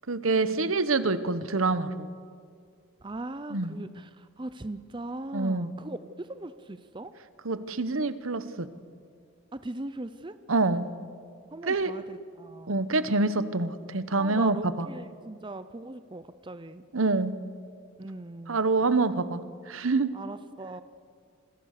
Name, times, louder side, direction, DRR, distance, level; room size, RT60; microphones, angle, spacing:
voice 1, 0.1-2.1 3.5-3.7 5.3-5.7 7.4-8.7 10.5-10.9 11.7-11.9 12.7-14.9 16.9-17.4 18.5-19.4 19.7-20.1, right 3 dB, 70° right, 13 dB, 1.1 m, -26 dB
voice 2, 3.0-7.1 9.5-10.4 11.5-12.8 14.2-16.8 18.0-18.6 20.1-20.8, right 2 dB, 20° right, 12 dB, 0.6 m, -39 dB
27.0 x 21.0 x 6.6 m, 2.2 s
head